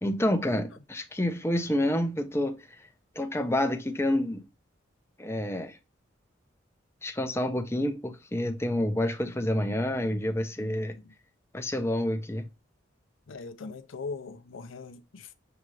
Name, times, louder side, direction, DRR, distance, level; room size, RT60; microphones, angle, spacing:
voice 1, 0.0-2.6 3.2-4.4 5.2-5.8 7.0-11.0 11.5-12.5, left 1 dB, 15° left, 0.6 m, -28 dB
voice 2, 0.5-0.8 10.9-11.1 13.3-15.3, left 4 dB, 85° left, 0.6 m, -41 dB
6.9 x 2.5 x 3.1 m
head